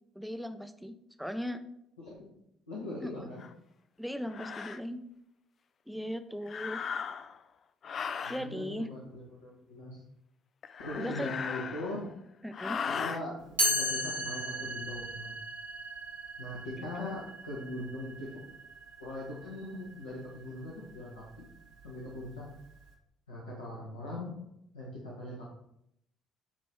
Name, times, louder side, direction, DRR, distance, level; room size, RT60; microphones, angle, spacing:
voice 1, 0.1-1.6 3.0-3.1 4.0-5.0 5.9-6.9 8.2-8.9 11.0-11.3 12.4-12.8, equal, ahead, 8 dB, 0.6 m, -38 dB
voice 2, 2.7-3.4 8.2-10.0 10.8-12.1 13.0-15.3 16.4-18.3 19.0-21.4 21.8-22.5 23.3-24.3 24.7-25.4, left 1 dB, 80° left, -6 dB, 1.3 m, -40 dB
sound 1, 3.4-3.5 4.3-4.8 6.4-7.4 7.8-8.5 10.6-12.1 12.5-13.2, left 6 dB, 45° left, 0.3 m, -37 dB
Chime, 13.6-19.4, equal, 85° right, 1.2 m, -35 dB
8.8 x 3.1 x 4.4 m, 0.78 s
figure-of-eight pair, 50°, 0 cm